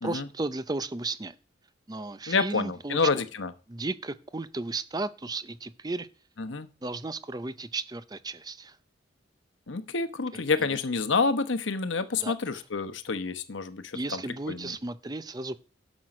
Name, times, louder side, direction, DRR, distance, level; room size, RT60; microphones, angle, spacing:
voice 1, 0.0-1.4 1.9-3.0 3.7-6.1 6.8-8.8 10.6-10.8 12.2-12.3 13.9-15.6, right 2 dB, 20° right, 0.6 m, -34 dB
voice 2, 2.3-3.5 6.4-6.7 9.7-14.2 14.5-14.7, left 4 dB, 80° left, 1.0 m, -28 dB
12.0 x 6.3 x 6.0 m
head